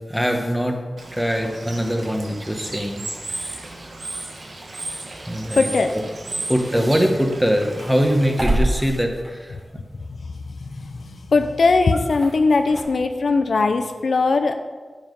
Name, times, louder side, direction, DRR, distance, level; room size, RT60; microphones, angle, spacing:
voice 1, 0.1-0.8 1.1-3.0 5.2-5.7 6.5-9.5, equal, 5° right, 3 dB, 1.5 m, -22 dB
Bird / Water, 1.0-8.4, right 2 dB, 65° right, 1.7 m, -34 dB
voice 2, 5.6-5.9 10.1-14.5, left 3 dB, 75° left, 7 dB, 0.7 m, -20 dB
sound 1, 6.6-12.8, right 1 dB, 35° right, 3.2 m, -30 dB
10.0 x 7.3 x 5.5 m, 1.4 s
wide cardioid pair, 65°, 0 cm